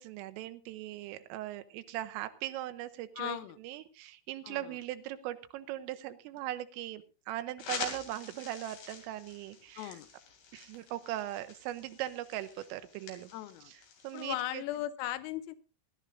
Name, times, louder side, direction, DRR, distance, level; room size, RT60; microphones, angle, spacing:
voice 1, 0.0-3.4 3.6-10.0 10.5-13.3 13.7-13.8 14.0-14.6, right 14 dB, 85° right, 10 dB, 3.4 m, -39 dB
voice 2, 3.2-3.6 4.4-4.8 9.8-10.1 13.3-13.7 14.1-15.6, left 14 dB, 90° left, 13 dB, 3.5 m, -37 dB
sound 1, 7.6-14.4, left 6 dB, 70° left, 5.2 m, -46 dB
20.5 x 12.0 x 2.6 m, 0.32 s
omnidirectional pair, 5.9 m